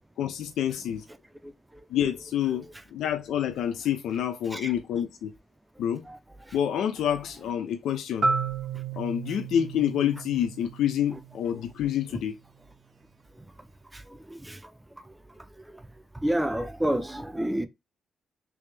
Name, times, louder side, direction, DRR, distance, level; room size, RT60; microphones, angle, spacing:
voice 1, 0.2-1.0 1.9-5.3 5.8-6.0 6.5-8.3 9.0-12.3, left 10 dB, 85° left, 0.4 m, -28 dB
Marimba xylophone, 8.2-12.1, right 4 dB, 50° right, 0.7 m, -33 dB
voice 2, 16.2-17.7, right 1 dB, 10° right, 0.5 m, -29 dB
3.4 x 2.8 x 3.3 m
cardioid pair, 105°, 0 cm